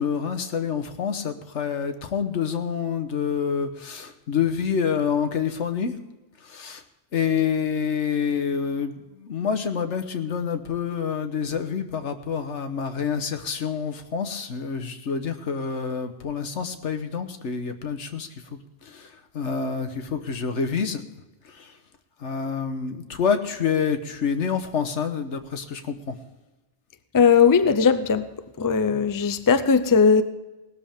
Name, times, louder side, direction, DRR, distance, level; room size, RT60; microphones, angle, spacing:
voice 1, 0.0-6.0 6.4-6.8 7.1-21.0 21.4-21.8 22.2-26.2, left 6 dB, 80° left, 1.4 m, -27 dB
voice 2, 27.1-28.3 28.6-30.2, left 6 dB, 25° left, 0.5 m, -18 dB
18.0 x 13.0 x 3.6 m
omnidirectional pair, 1.2 m